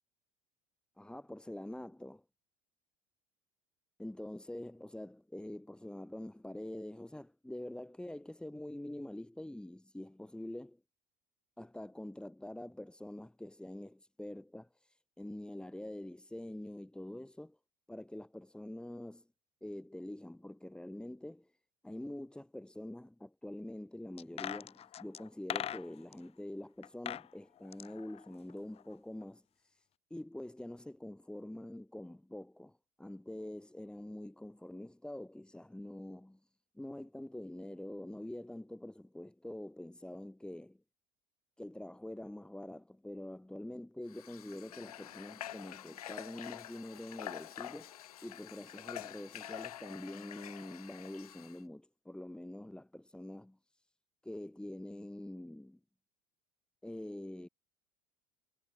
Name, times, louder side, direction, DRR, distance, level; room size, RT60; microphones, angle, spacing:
voice 1, 1.0-2.2 4.0-10.8 11.6-17.6 17.9-19.3 19.6-21.5 21.8-36.5 36.7-40.8 41.6-53.9 54.2-55.8 56.8-57.5, left 1 dB, 5° left, 3.0 m, -45 dB
sound 1, 24.2-26.2 26.8-27.3 27.6-28.9 29.2-29.3, left 10 dB, 30° left, 0.7 m, -41 dB
Water / Water tap faucet, 44.1-51.6, left 12 dB, 75° left, 4.1 m, -47 dB
figure-of-eight pair, 70°, 19 cm